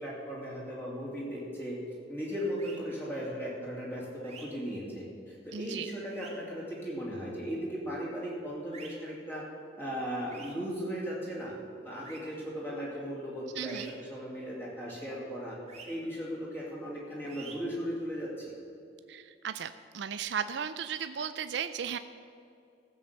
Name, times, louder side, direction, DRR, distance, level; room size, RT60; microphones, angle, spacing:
voice 1, 0.0-1.8 2.1-9.5 9.8-11.5 11.8-15.6 15.8-18.5, equal, 10° left, -6 dB, 2.6 m, -37 dB
sound 1, 2.6-2.8 4.2-4.4 6.0-6.3 8.7-8.9 10.3-10.5 12.0-12.2 13.6-13.9 15.7-15.9 17.2-17.5, right 5 dB, 35° right, 2.1 m, -48 dB
voice 2, 5.5-5.9 13.6-13.9 19.1-22.0, right 7 dB, 65° right, 11 dB, 0.4 m, -35 dB
14.5 x 7.7 x 6.8 m, 2.5 s
head